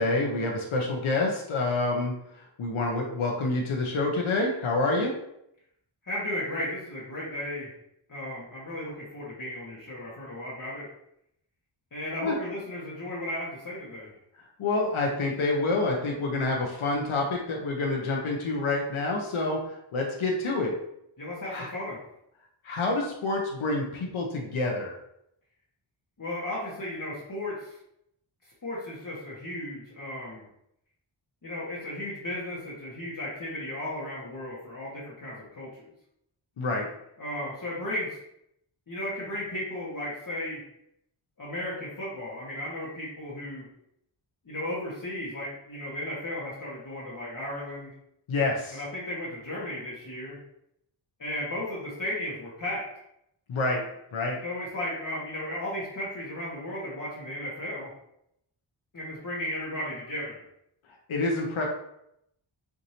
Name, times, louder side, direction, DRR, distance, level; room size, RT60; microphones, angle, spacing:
voice 1, 0.0-2.1 2.6-5.2 12.2-12.4 14.6-19.6 19.9-20.7 21.5-21.7 22.6-24.9 36.6-36.9 48.3-48.8 53.5-53.8 54.1-54.4 61.1-61.7, left 2 dB, 85° left, 0 dB, 0.8 m, -27 dB
voice 2, 6.0-7.7 8.1-10.9 11.9-14.1 21.2-22.0 26.2-27.8 28.6-30.4 31.4-35.8 37.2-38.2 38.9-40.6 41.4-43.7 44.4-47.9 48.7-50.4 51.2-52.9 54.4-57.9 58.9-60.4, left 1 dB, 40° left, -7 dB, 1.1 m, -35 dB
4.7 x 2.6 x 2.8 m, 0.77 s
wide cardioid pair, 85°, 48 cm